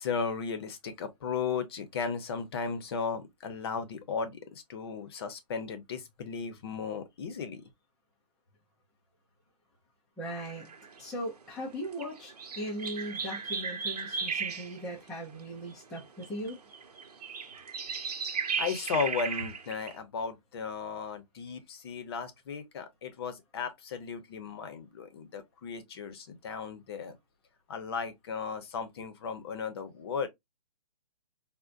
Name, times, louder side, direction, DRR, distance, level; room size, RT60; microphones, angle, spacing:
voice 1, 0.0-7.6 18.6-27.2 27.7-30.3, left 5 dB, 40° left, 0.7 m, -35 dB
voice 2, 10.2-10.7 11.0-16.6, equal, ahead, 0.3 m, -38 dB
sound 1, 10.4-11.0 11.4-15.1 15.4-15.5 15.7-20.0, right 5 dB, 75° right, 0.9 m, -36 dB
3.8 x 2.1 x 2.4 m
hypercardioid pair, 155°, 20 cm